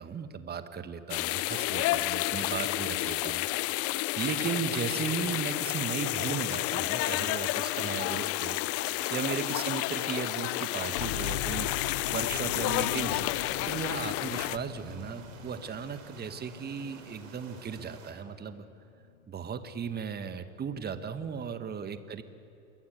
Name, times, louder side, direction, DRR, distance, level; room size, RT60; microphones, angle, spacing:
voice 1, 0.0-3.5 4.2-8.6 9.1-11.7 12.1-13.3 13.7-18.7 19.3-22.2, right 6 dB, 25° right, 10 dB, 1.7 m, -36 dB
sound 1, 1.1-14.6, left 18 dB, 35° left, 0.7 m, -30 dB
sound 2, 8.7-18.1, right 5 dB, 65° right, 4.7 m, -51 dB
sound 3, 11.0-18.5 19.2-19.3, left 9 dB, 65° left, 1.7 m, -42 dB
27.5 x 22.5 x 8.3 m, 2.7 s
figure-of-eight pair, 80°, 41 cm